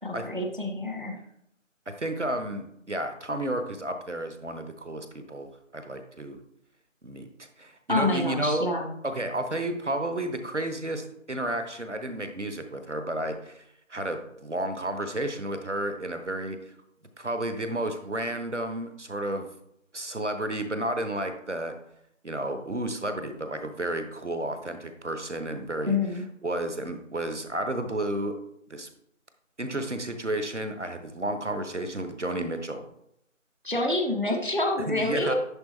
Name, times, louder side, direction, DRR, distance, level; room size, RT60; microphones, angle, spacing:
voice 1, 0.0-1.2 7.9-8.9 25.9-26.2 33.6-35.3, left 2 dB, 40° right, 3 dB, 0.9 m, -27 dB
voice 2, 1.9-5.5 5.7-6.4 7.0-8.7 9.0-13.6 13.9-16.6 17.2-19.5 19.9-21.7 22.2-26.0 26.4-28.4 28.7-28.9 29.6-32.8 34.9-35.3, right 1 dB, 60° right, 7 dB, 1.0 m, -32 dB
10.5 x 4.2 x 3.2 m, 0.76 s
figure-of-eight pair, 180°, 39 cm